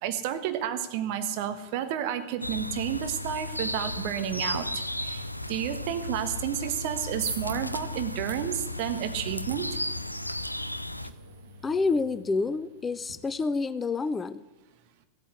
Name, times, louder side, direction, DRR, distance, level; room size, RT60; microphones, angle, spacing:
voice 1, 0.0-9.8, right 9 dB, 45° right, 9 dB, 1.3 m, -31 dB
sound 1, 2.4-11.1, left 1 dB, 90° left, 0.5 m, -35 dB
sound 2, 6.8-13.1, right 4 dB, 70° right, 1.9 m, -44 dB
voice 2, 11.6-14.4, left 4 dB, 15° left, 14 dB, 0.5 m, -28 dB
15.0 x 8.7 x 8.1 m, 1.1 s
figure-of-eight pair, 90°, 0 cm